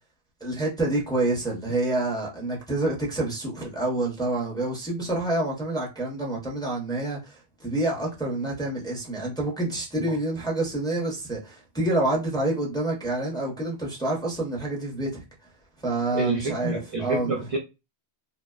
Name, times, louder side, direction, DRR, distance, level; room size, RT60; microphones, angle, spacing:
voice 1, 0.4-15.2 15.8-17.4, right 2 dB, 5° left, 0.5 m, -27 dB
voice 2, 16.1-17.6, right 2 dB, 55° right, 0.4 m, -28 dB
2.6 x 2.1 x 2.3 m
omnidirectional pair, 1.1 m